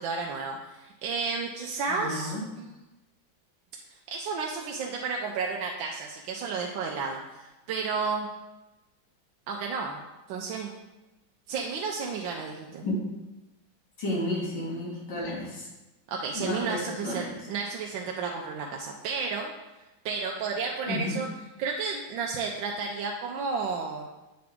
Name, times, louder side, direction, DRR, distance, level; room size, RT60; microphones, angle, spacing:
voice 1, 0.0-2.7 4.1-8.3 9.5-10.0 10.3-10.7 11.5-12.9 16.1-19.5 20.0-21.3 21.6-24.1, right 5 dB, 80° right, 0 dB, 1.3 m, -32 dB
voice 2, 1.9-2.4 12.8-13.0 14.0-15.7 16.3-17.4 20.9-21.2, left 1 dB, 65° left, -5 dB, 2.3 m, -32 dB
7.7 x 3.8 x 3.5 m, 1.0 s
omnidirectional pair, 2.1 m